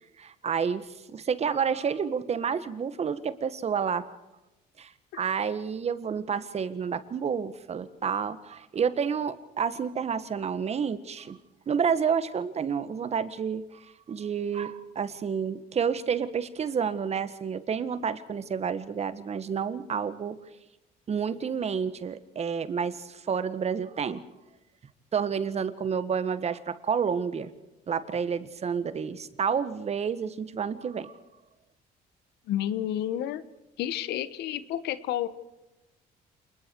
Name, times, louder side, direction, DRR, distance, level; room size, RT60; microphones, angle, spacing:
voice 1, 0.2-4.1 4.8-11.4 11.7-20.4 21.1-24.2 25.1-27.5 27.9-31.1, right 6 dB, 40° right, 13 dB, 1.7 m, -30 dB
voice 2, 32.5-33.4 33.8-35.3, left 11 dB, 80° left, 15 dB, 1.4 m, -30 dB
28.0 x 21.0 x 4.8 m, 1.0 s
cardioid pair, 110°, 17 cm